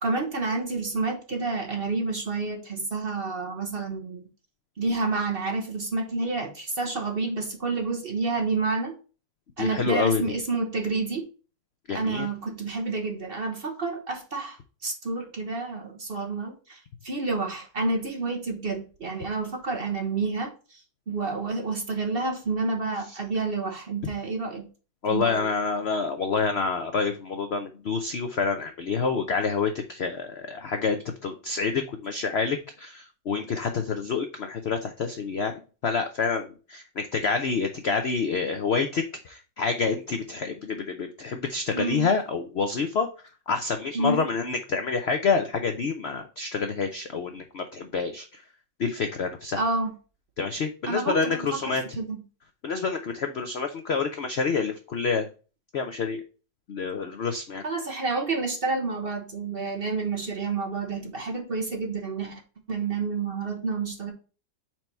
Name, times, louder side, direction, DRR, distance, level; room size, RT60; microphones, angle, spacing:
voice 1, 0.0-4.2 4.8-8.9 9.6-11.3 11.9-24.7 25.1-25.5 41.7-42.1 43.9-44.3 49.6-49.9 50.9-52.2 57.6-62.4 62.7-64.1, right 3 dB, 35° right, 2 dB, 1.1 m, -29 dB
voice 2, 9.6-10.2 11.9-12.3 25.0-35.5 35.8-43.1 43.5-48.4 48.8-49.6 50.4-51.8 52.6-55.3 55.7-56.2 56.7-57.6, left 5 dB, 80° left, 7 dB, 0.5 m, -28 dB
4.6 x 4.5 x 5.4 m, 0.35 s
omnidirectional pair, 1.9 m